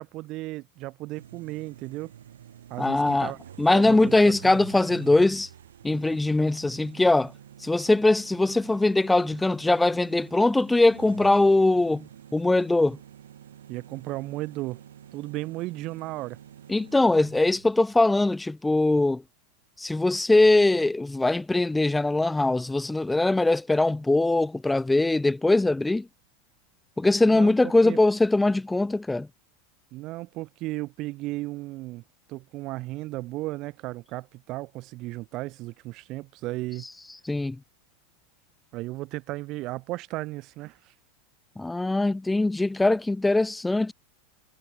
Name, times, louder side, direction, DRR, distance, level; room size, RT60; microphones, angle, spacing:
voice 1, 0.0-2.1 2.7-3.4 3.7-4.2 13.7-14.8 15.1-16.4 27.3-27.5 27.8-28.0 29.9-32.0 32.3-36.9 38.7-40.9, right 19 dB, 50° right, 0.5 m, -35 dB
sound 1, 1.1-18.0, right 10 dB, 85° right, 2.2 m, -48 dB
voice 2, 2.8-3.3 3.6-5.5 5.8-7.3 7.6-12.1 12.3-13.0 16.7-19.2 19.8-26.1 27.0-29.3 37.3-37.6 41.6-43.9, left 2 dB, 10° left, 0.3 m, -21 dB
hypercardioid pair, 105°, 0 cm